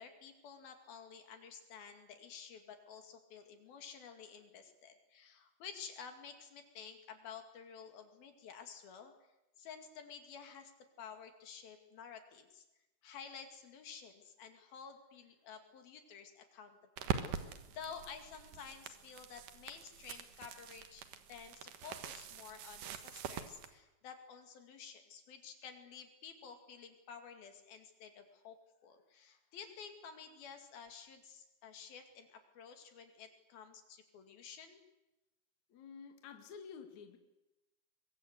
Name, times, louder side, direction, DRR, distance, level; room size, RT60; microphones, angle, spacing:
voice 1, 0.0-9.1 9.6-10.7 11.0-12.6 13.0-28.6 28.8-34.8, left 6 dB, 70° left, 6 dB, 4.1 m, -52 dB
sound 1, 17.0-23.7, right 8 dB, 65° right, 2.8 m, -44 dB
voice 2, 35.7-37.2, left 6 dB, 55° left, 6 dB, 2.9 m, -51 dB
23.5 x 23.0 x 8.1 m, 0.95 s
omnidirectional pair, 4.5 m